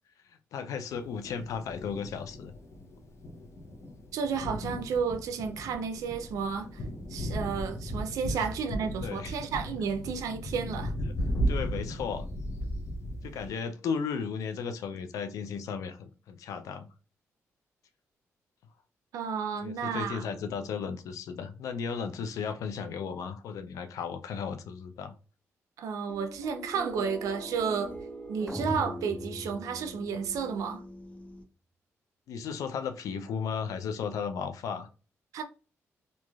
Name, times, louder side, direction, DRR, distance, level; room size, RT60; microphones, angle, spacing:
voice 1, 0.5-2.6 8.3-8.4 8.7-9.4 11.1-11.2 11.5-12.3 13.2-16.9 19.6-25.1 32.3-34.9, left 6 dB, 80° left, 0.4 m, -35 dB
Thunder, 0.9-13.5, equal, 60° left, 0.8 m, -36 dB
voice 2, 4.1-6.8 7.1-10.9 19.1-20.2 25.8-27.9 28.3-30.8 35.3-35.4, right 6 dB, 85° right, 0.4 m, -32 dB
sound 1, 26.1-31.4, equal, 25° left, 0.8 m, -43 dB
sound 2, 28.5-30.6, equal, 5° right, 0.5 m, -39 dB
3.0 x 2.4 x 2.3 m
cardioid pair, 65°, 6 cm